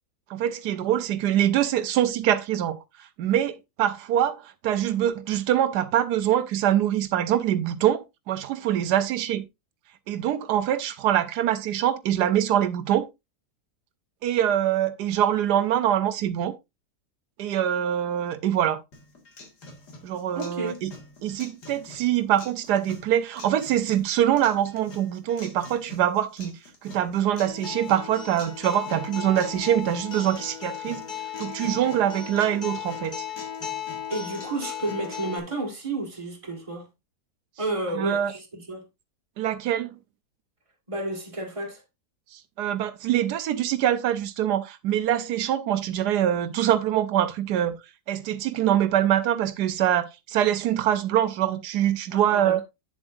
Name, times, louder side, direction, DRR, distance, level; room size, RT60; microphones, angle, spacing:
voice 1, 0.3-9.4 10.1-13.1 14.2-16.5 17.4-18.8 20.0-20.9 21.2-31.0 31.4-33.3 38.0-38.3 39.4-40.0 42.3-47.8 48.1-52.6, right 11 dB, 85° right, 1.2 m, -24 dB
sound 1, 18.9-34.9, left 2 dB, 85° left, 2.7 m, -47 dB
voice 2, 20.3-20.8 34.1-36.9 37.6-38.9 40.9-41.8 52.1-52.6, right 2 dB, 20° right, 1.8 m, -31 dB
Acoustic guitar, 27.4-35.4, left 8 dB, 35° left, 1.2 m, -36 dB
8.9 x 7.1 x 2.6 m
omnidirectional pair, 1.7 m